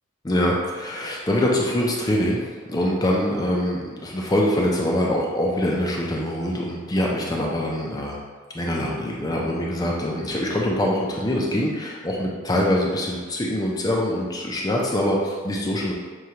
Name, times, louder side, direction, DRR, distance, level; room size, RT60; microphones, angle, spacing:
voice 1, 0.2-2.4 2.7-8.2 8.5-15.9, left 1 dB, 20° left, -2 dB, 0.4 m, -24 dB
6.2 x 2.3 x 2.8 m, 1.5 s
head